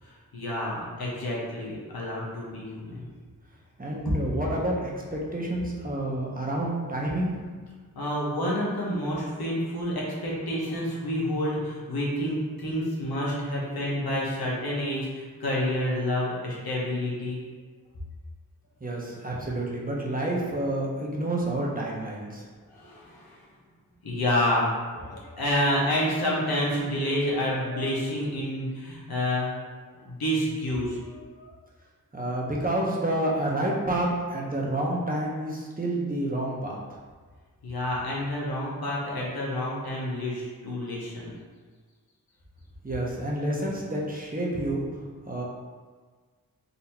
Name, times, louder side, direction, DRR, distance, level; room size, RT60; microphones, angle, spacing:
voice 1, 0.0-3.1 7.9-17.4 22.7-23.4 24.0-24.7 24.9-29.5 30.0-31.5 37.6-41.3, left 1 dB, 90° left, -5 dB, 1.2 m, -29 dB
voice 2, 3.8-7.3 18.8-22.4 32.1-36.8 42.8-45.0 45.3-45.4, right 1 dB, 25° right, -4 dB, 0.9 m, -29 dB
4.1 x 2.8 x 4.3 m, 1.5 s
wide cardioid pair, 75°, 36 cm